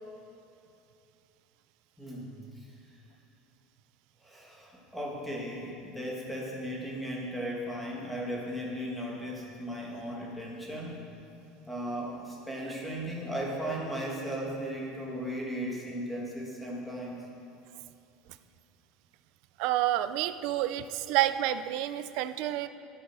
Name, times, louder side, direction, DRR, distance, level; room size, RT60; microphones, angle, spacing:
voice 1, 2.0-2.3 4.2-11.0 11.7-17.2, equal, ahead, -3 dB, 1.9 m, -36 dB
voice 2, 19.6-22.7, right 13 dB, 55° right, 12 dB, 0.5 m, -29 dB
11.5 x 11.0 x 6.2 m, 2.8 s
cardioid pair, 180°, 0 cm